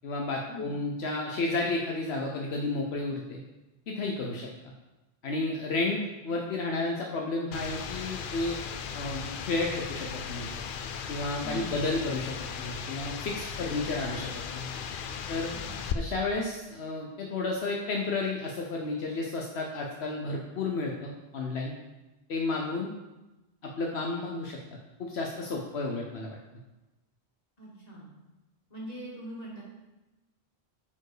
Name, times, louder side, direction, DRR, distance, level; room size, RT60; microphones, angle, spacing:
voice 1, 0.0-3.4 3.9-4.5 5.2-8.6 8.9-10.5 11.1-14.7 15.3-15.5 15.9-21.7 22.3-22.9 23.8-24.6 25.0-26.4, left 3 dB, 80° left, -1 dB, 1.1 m, -32 dB
sound 1, 7.5-15.9, left 7 dB, 60° left, 0.7 m, -37 dB
voice 2, 11.4-11.9 15.5-15.8 27.6-28.1 28.7-29.6, right 1 dB, 40° left, -5 dB, 2.4 m, -42 dB
8.7 x 4.5 x 4.9 m, 1.1 s
omnidirectional pair, 1.1 m